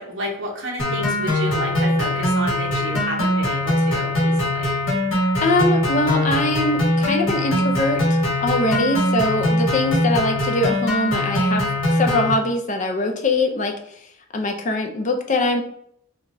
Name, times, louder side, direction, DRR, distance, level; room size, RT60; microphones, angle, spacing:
voice 1, 0.0-4.7, right 1 dB, 65° right, -2 dB, 0.9 m, -31 dB
sound 1, 0.8-12.3, left 1 dB, 75° left, 1.5 m, -21 dB
voice 2, 5.4-13.7 14.3-15.6, left 2 dB, 35° left, 3 dB, 0.5 m, -22 dB
4.8 x 2.4 x 2.6 m, 0.69 s
head